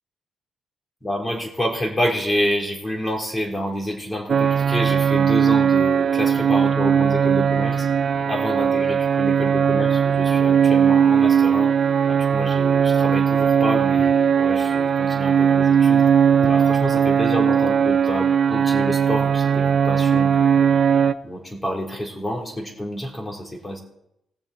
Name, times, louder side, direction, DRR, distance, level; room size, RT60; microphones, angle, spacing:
voice 1, 1.0-7.9 8.3-11.7 12.1-20.7 21.2-23.8, equal, 15° left, 0 dB, 3.8 m, -28 dB
sound 1, 4.3-21.1, right 7 dB, 55° right, 0.6 m, -18 dB
20.5 x 7.0 x 4.4 m, 0.79 s
cardioid pair, 75°, 0 cm